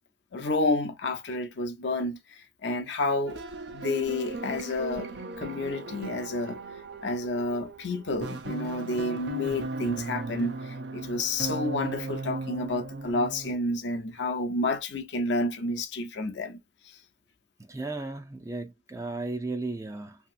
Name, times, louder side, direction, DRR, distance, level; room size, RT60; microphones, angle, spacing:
voice 1, 0.3-2.2 2.6-3.4 3.7-5.1 5.4-6.6 7.0-16.6, left 2 dB, 75° left, 0.6 m, -30 dB
sound 1, 3.2-13.5, right 3 dB, 65° right, 0.6 m, -37 dB
voice 2, 17.7-20.2, right 2 dB, 15° right, 0.5 m, -35 dB
2.9 x 2.8 x 2.4 m
head